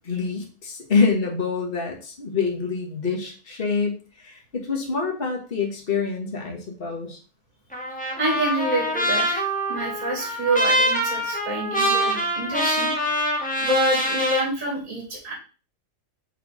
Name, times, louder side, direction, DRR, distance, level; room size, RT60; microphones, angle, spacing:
voice 1, 0.0-7.2, left 5 dB, 35° left, 0 dB, 1.5 m, -26 dB
Trumpet, 7.7-14.5, equal, 5° left, 0.9 m, -24 dB
voice 2, 8.2-12.9 13.6-15.3, right 1 dB, 55° right, 0 dB, 2.7 m, -27 dB
5.9 x 3.4 x 4.8 m, 0.36 s
omnidirectional pair, 1.7 m